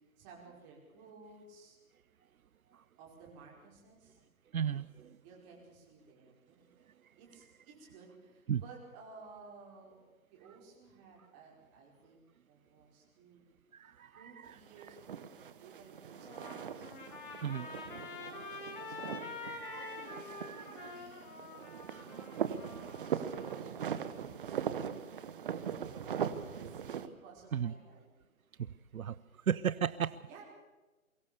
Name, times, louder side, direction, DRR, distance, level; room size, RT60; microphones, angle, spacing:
voice 1, 0.2-1.8 3.0-4.2 5.2-6.7 7.2-10.0 10.3-12.2 12.5-13.4 14.2-17.0 17.5-19.5 19.7-21.5 21.9-28.1 30.0-30.4, right 4 dB, 20° right, -2 dB, 5.1 m, -57 dB
voice 2, 4.5-5.1 8.5-8.6 13.7-14.1 14.5-14.6 17.4-17.6 19.6-20.9 21.9-22.0 27.5-27.7 28.9-29.2 29.5-30.2, right 8 dB, 80° right, 17 dB, 0.7 m, -35 dB
sound 1, 14.5-27.1, right 8 dB, 40° right, 1.0 m, -40 dB
Trumpet, 16.1-23.6, left 4 dB, 35° left, 3.2 m, -47 dB
23.0 x 17.0 x 7.0 m, 1.2 s
hypercardioid pair, 150°, 42 cm